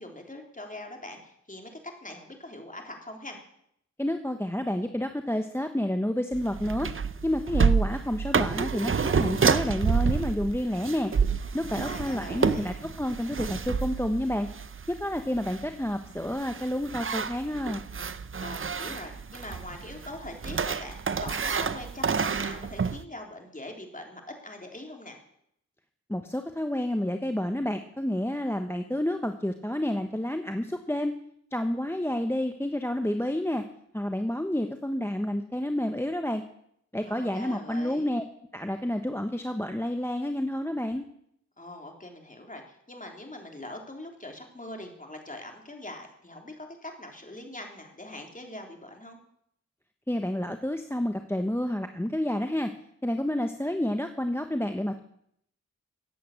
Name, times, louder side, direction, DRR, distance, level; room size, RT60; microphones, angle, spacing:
voice 1, 0.0-3.4 11.7-12.7 18.4-25.2 37.0-38.1 41.6-49.2, left 1 dB, 25° left, 2 dB, 3.4 m, -42 dB
voice 2, 4.0-6.9 7.2-11.1 11.5-14.5 14.9-17.8 26.1-31.1 31.5-33.6 33.9-36.4 36.9-38.2 38.5-41.0 50.1-52.7 53.0-55.0, left 1 dB, 10° left, 7 dB, 1.0 m, -29 dB
sound 1, 6.3-23.0, right 5 dB, 45° right, 0.7 m, -29 dB
14.5 x 8.6 x 8.4 m, 0.73 s
wide cardioid pair, 65°, 30 cm